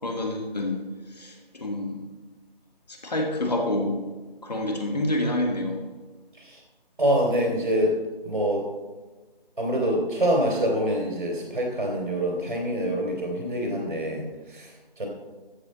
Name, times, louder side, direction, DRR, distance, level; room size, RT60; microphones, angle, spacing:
voice 1, 0.0-0.8 1.1-2.0 2.9-4.0 4.4-5.8, left 1 dB, 45° left, 1 dB, 2.1 m, -27 dB
voice 2, 7.0-8.0 8.2-8.7 9.6-15.1, equal, 55° right, 0 dB, 3.0 m, -25 dB
14.0 x 7.8 x 4.2 m, 1.3 s
figure-of-eight pair, 175°, 30 cm